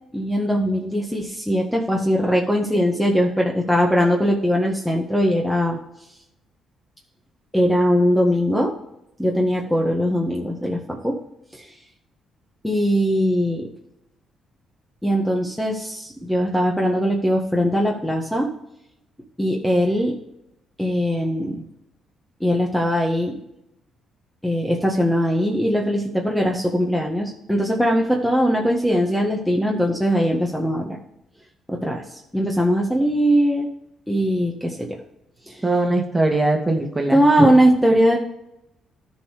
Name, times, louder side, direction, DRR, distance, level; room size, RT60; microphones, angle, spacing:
voice 1, 0.1-5.8 7.5-8.7 9.2-11.2 11.5-11.7 12.6-13.7 15.0-18.5 19.4-20.2 20.8-21.6 22.4-23.4 24.4-31.0 31.7-33.7 34.1-35.0 35.5-35.6 37.1-38.2, equal, 5° left, 0 dB, 1.6 m, -20 dB
voice 2, 35.6-37.5, right 2 dB, 15° right, 3 dB, 2.1 m, -21 dB
13.0 x 4.7 x 4.9 m, 0.81 s
supercardioid pair, 65°, 0 cm